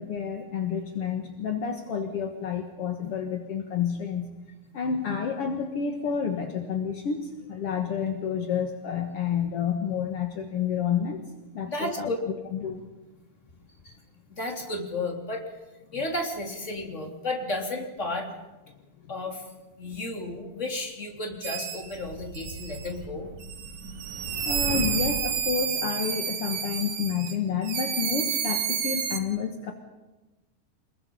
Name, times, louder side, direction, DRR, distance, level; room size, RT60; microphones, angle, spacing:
voice 1, 0.0-4.3 4.7-11.2 11.5-12.1 12.5-12.8 24.4-29.7, left 7 dB, 55° left, 4 dB, 1.7 m, -29 dB
voice 2, 11.7-12.2 13.8-14.0 14.3-15.4 15.9-18.3 19.1-19.5 19.8-23.3, left 2 dB, 20° left, 1 dB, 3.3 m, -33 dB
sound 1, 21.4-21.9 22.3-22.9 23.4-27.4 27.6-29.2, right 8 dB, 90° right, 4.2 m, -30 dB
sound 2, 21.8-25.5, right 3 dB, 50° right, 3.1 m, -37 dB
29.0 x 21.5 x 5.6 m, 1.1 s
omnidirectional pair, 4.6 m